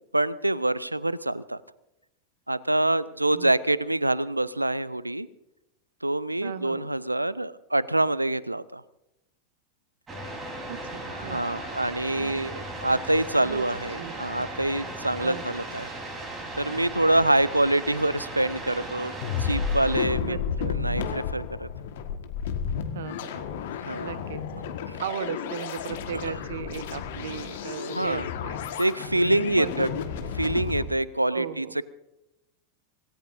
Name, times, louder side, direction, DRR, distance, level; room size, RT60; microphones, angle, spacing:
voice 1, 0.1-1.6 2.5-5.3 6.0-8.8 11.1-12.5 12.8-15.9 16.5-19.1 19.4-21.7 23.9-24.2 24.9-25.0 26.3-26.4 27.9-28.3 28.8-29.9 30.4-31.8, right 1 dB, 85° right, 20 dB, 0.5 m, -26 dB
voice 2, 6.4-6.9 10.7-11.5 12.1-12.6 13.4-13.7 14.0-14.1 15.2-15.5 20.2-20.7 22.9-23.5 24.0-24.4 25.0-28.6 29.6-30.1 31.3-31.7, right 9 dB, 60° right, 14 dB, 1.1 m, -36 dB
sound 1, 10.1-20.1, right 1 dB, 20° right, 4.0 m, -37 dB
sound 2, 19.2-30.8, left 7 dB, 55° left, 1.6 m, -32 dB
26.0 x 18.0 x 2.7 m, 0.87 s
figure-of-eight pair, 90°, 0 cm